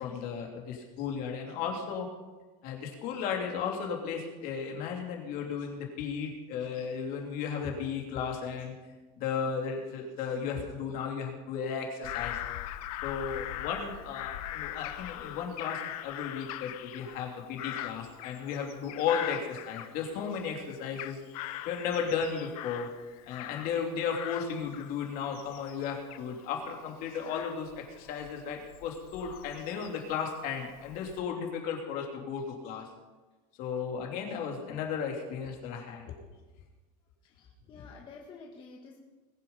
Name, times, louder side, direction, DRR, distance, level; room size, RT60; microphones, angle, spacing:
voice 1, 0.0-2.1 2.6-8.7 9.2-12.4 13.0-21.2 21.6-22.9 23.3-32.9 33.6-36.1, left 6 dB, 50° left, 1 dB, 3.0 m, -35 dB
Bird vocalization bird call bird song / Crow, 12.0-20.4 20.7-23.8 24.1-30.1 30.6-31.2, left 14 dB, 85° left, 0.9 m, -41 dB
voice 2, 37.2-39.0, left 4 dB, 25° left, -1 dB, 1.6 m, -50 dB
20.5 x 7.8 x 5.6 m, 1.2 s
supercardioid pair, 150°, 18 cm